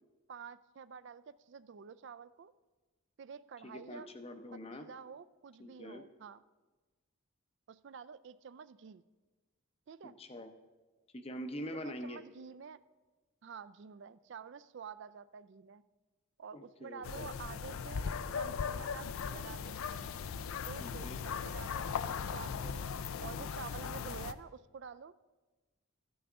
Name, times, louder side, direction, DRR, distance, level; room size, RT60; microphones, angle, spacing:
voice 1, 0.3-2.5 3.2-4.1 4.5-6.4 7.7-9.0 9.9-10.1 11.7-12.8 13.4-15.8 16.4-18.0 18.3-19.8 20.7-21.9 22.3-25.1, right 6 dB, 60° right, 15 dB, 0.3 m, -49 dB
voice 2, 3.6-4.9 5.6-6.0 10.0-10.5 11.1-12.2 16.5-17.3 20.8-21.2, equal, 30° left, 8 dB, 0.7 m, -44 dB
sound 1, 17.0-24.3, left 6 dB, 85° left, 0.4 m, -38 dB
14.0 x 9.4 x 3.6 m, 1.2 s
head